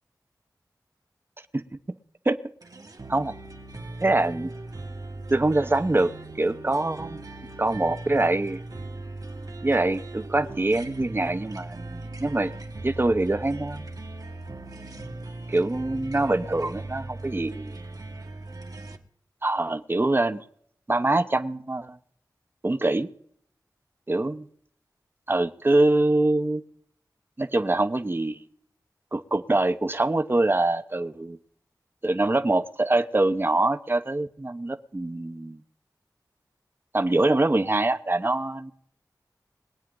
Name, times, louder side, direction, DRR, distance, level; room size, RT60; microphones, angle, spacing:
sound 1, 2.6-19.0, right 2 dB, 60° right, 1.4 m, -39 dB
voice 1, 4.0-4.5 5.3-6.1 6.4-7.2 7.6-8.6 9.6-12.5 12.8-13.9 15.5-17.8 19.4-20.4 20.9-22.0 22.6-23.1 24.1-24.4 25.3-26.6 27.4-28.4 29.1-31.4 32.0-35.6 36.9-38.7, right 2 dB, 30° right, 10 dB, 0.9 m, -24 dB
22.0 x 9.1 x 3.9 m, 0.64 s
wide cardioid pair, 65°, 7 cm